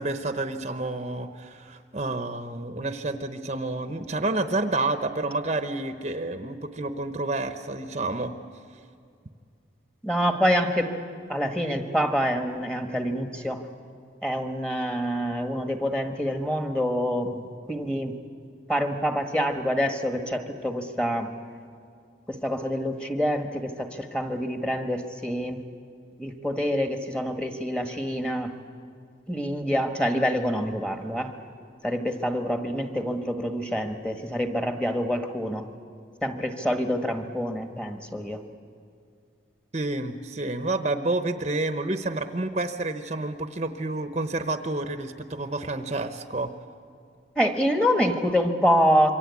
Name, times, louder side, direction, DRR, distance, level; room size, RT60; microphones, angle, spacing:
voice 1, 0.0-8.3 39.7-46.5, right 2 dB, 35° right, 8 dB, 0.9 m, -29 dB
voice 2, 10.0-10.9 11.3-13.6 14.2-18.2 18.7-21.3 22.3-25.6 26.2-28.5 29.3-31.3 31.8-35.6 36.2-38.4 47.3-49.1, equal, 5° left, 4 dB, 1.5 m, -26 dB
27.0 x 24.0 x 8.4 m, 2.3 s
head